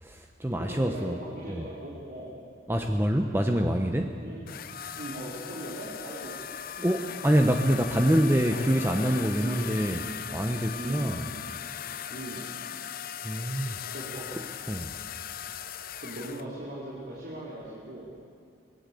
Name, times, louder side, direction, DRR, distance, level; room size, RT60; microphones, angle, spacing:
voice 1, 0.0-1.2 1.5-1.6 2.7-4.2 6.8-10.0 10.3-11.2 13.2-13.8 14.7-14.9, equal, 15° right, 4 dB, 0.9 m, -26 dB
voice 2, 0.6-2.4 4.2-4.4 5.0-6.4 6.7-6.8 7.2-7.3 8.2-8.6 9.4-9.8 10.7-11.3 12.1-12.5 13.9-14.5 16.0-18.3, right 1 dB, 60° right, -7 dB, 4.4 m, -39 dB
sound 1, 4.5-16.4, left 9 dB, 55° left, 0.7 m, -39 dB
25.0 x 18.5 x 8.4 m, 2.2 s
head